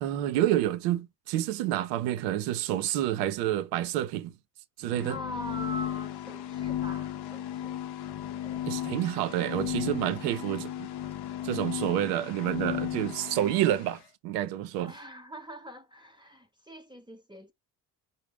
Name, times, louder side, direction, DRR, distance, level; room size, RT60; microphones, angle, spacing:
voice 1, 0.0-4.3 4.8-5.2 8.7-10.9 11.4-14.9, right 12 dB, 85° right, 0.6 m, -28 dB
sound 1, 4.9-14.0, left 11 dB, 55° left, 0.6 m, -35 dB
voice 2, 5.1-7.8 8.4-8.7 14.8-17.5, equal, 10° right, 0.7 m, -43 dB
4.8 x 2.1 x 3.3 m
supercardioid pair, 60°, 46 cm